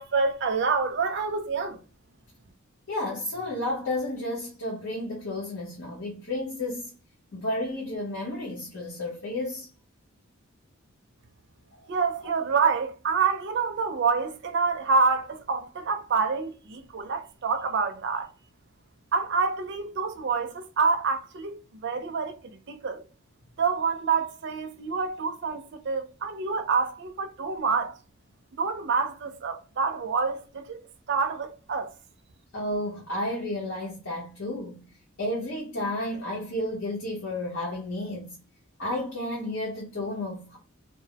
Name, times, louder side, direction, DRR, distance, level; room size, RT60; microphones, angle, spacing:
voice 1, 0.0-1.8 11.9-18.3 19.1-22.4 22.7-23.0 23.6-27.9 28.5-30.8 31.1-31.9, right 5 dB, 55° right, 0.4 m, -27 dB
voice 2, 2.9-6.9 7.3-9.7 32.5-34.8 35.2-38.3 38.8-40.6, left 1 dB, 65° left, 0.8 m, -32 dB
2.2 x 2.1 x 2.8 m
head